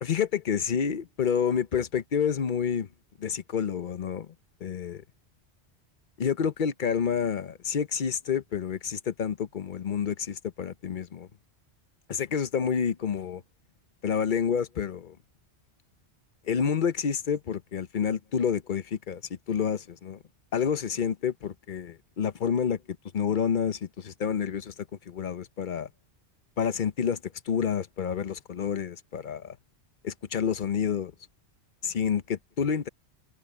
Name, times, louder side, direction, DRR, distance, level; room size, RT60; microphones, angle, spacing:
voice 1, 0.0-2.9 3.2-4.3 4.6-5.0 6.2-11.3 12.1-13.4 14.0-15.2 16.5-19.2 19.5-20.2 20.5-22.8 23.1-25.9 26.6-29.6 30.0-31.1 31.8-32.9, left 7 dB, 50° left, 0.9 m, -29 dB
omnidirectional pair, 1.1 m